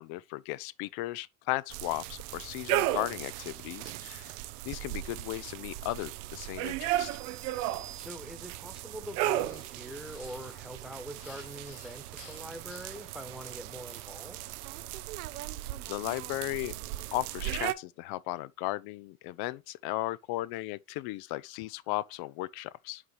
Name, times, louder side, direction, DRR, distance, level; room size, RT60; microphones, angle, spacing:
voice 1, 0.0-4.3 4.6-7.1 15.9-16.7 17.1-23.0, left 18 dB, 55° left, 0.6 m, -36 dB
sound 1, 1.7-17.7, right 15 dB, 70° right, 0.6 m, -36 dB
sound 2, 7.0-8.8, right 9 dB, 15° right, 0.7 m, -51 dB
voice 2, 7.9-14.4, equal, ahead, 1.2 m, -44 dB
sound 3, 9.3-14.2, left 8 dB, 85° left, 1.5 m, -57 dB
5.8 x 4.9 x 4.6 m
hypercardioid pair, 75°, 46 cm